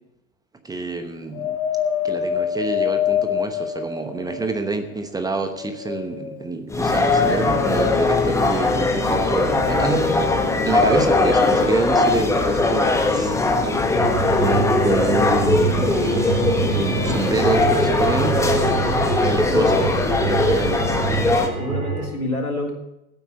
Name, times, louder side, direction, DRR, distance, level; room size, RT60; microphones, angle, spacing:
voice 1, 0.6-1.6 2.0-10.0 10.7-16.2 16.7-18.5 19.2-19.7 20.2-20.9, right 3 dB, 10° right, 7 dB, 1.0 m, -27 dB
Wind, 1.3-4.8 5.4-6.5 7.2-7.3, left 9 dB, 50° left, 1.8 m, -25 dB
sound 1, 6.7-21.5, left 3 dB, 5° left, 1.4 m, -20 dB
voice 2, 9.6-10.4 10.8-11.1 13.1-13.4 18.6-19.1 19.5-19.9 20.6-20.7 21.6-22.7, left 1 dB, 85° left, 0 dB, 3.4 m, -27 dB
sound 2, 13.9-22.1, right 5 dB, 40° right, 5.0 m, -26 dB
15.0 x 8.7 x 7.1 m, 0.86 s
figure-of-eight pair, 90°, 42 cm